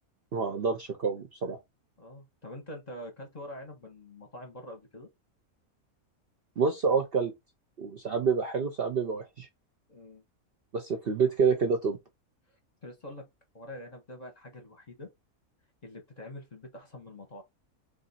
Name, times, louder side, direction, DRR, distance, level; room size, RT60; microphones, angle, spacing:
voice 1, 0.3-1.6 6.6-7.3 7.8-9.5 10.7-12.0, right 5 dB, 55° right, 0.7 m, -28 dB
voice 2, 2.0-5.1 9.9-10.2 12.8-13.2 13.5-15.1 15.8-17.4, left 1 dB, 35° left, 0.9 m, -45 dB
3.5 x 2.6 x 4.0 m
omnidirectional pair, 1.5 m